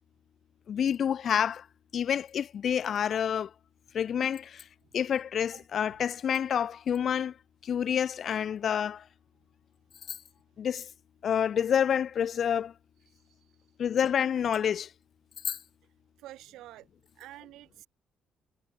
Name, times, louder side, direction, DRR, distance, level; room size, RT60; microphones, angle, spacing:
voice 1, 0.7-1.7 1.9-3.5 3.9-4.6 4.9-7.3 7.6-9.0 10.6-10.9 11.2-12.7 13.8-14.9 15.5-15.6, left 8 dB, 40° left, 2.0 m, -28 dB
voice 2, 16.2-16.9 17.2-17.9, right 15 dB, 90° right, 6.4 m, -48 dB
cardioid pair, 180°, 0 cm